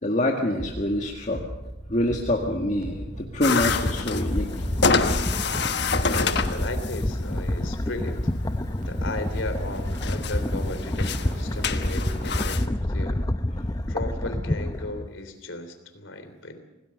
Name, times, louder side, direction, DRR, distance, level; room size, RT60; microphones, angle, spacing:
voice 1, 0.0-1.4 1.9-4.5, left 1 dB, 35° left, 1 dB, 1.8 m, -25 dB
sound 1, 0.6-12.6, right 1 dB, 40° right, 2.7 m, -38 dB
sound 2, 3.4-12.7, left 4 dB, 55° left, 1.3 m, -29 dB
sound 3, 3.6-15.1, left 1 dB, 20° left, 0.7 m, -28 dB
voice 2, 6.1-8.3 8.8-13.3 13.9-16.6, left 2 dB, 75° left, 9 dB, 3.3 m, -36 dB
26.0 x 18.5 x 6.6 m, 0.98 s
head